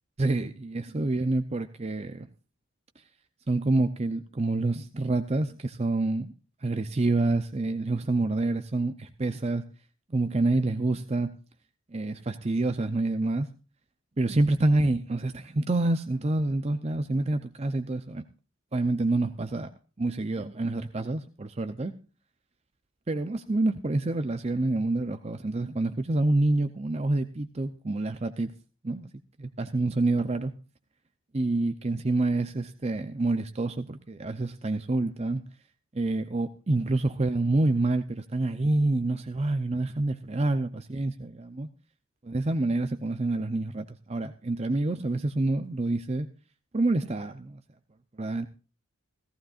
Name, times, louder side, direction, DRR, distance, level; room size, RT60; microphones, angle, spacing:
voice 1, 0.2-2.3 3.0-3.1 3.5-6.3 6.6-9.6 10.1-11.3 11.9-13.5 14.2-18.2 18.7-19.7 20.0-21.9 23.1-28.5 28.8-29.1 29.4-30.5 31.3-35.4 35.9-41.7 42.2-46.3 46.7-47.6 48.2-48.5, right 2 dB, 30° right, 9 dB, 0.5 m, -27 dB
17.5 x 15.0 x 2.4 m, 0.34 s
head